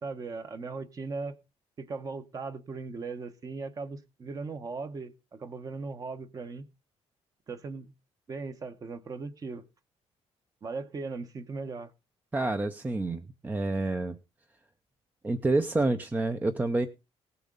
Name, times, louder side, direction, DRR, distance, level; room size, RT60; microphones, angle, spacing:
voice 1, 0.0-1.3 1.8-6.6 7.5-7.9 8.3-9.6 10.6-11.9, right 4 dB, 30° right, 10 dB, 1.1 m, -38 dB
voice 2, 12.3-14.2 15.2-16.9, right 2 dB, 15° right, 9 dB, 0.6 m, -28 dB
18.0 x 7.0 x 3.9 m, 0.27 s
cardioid pair, 145°, 11 cm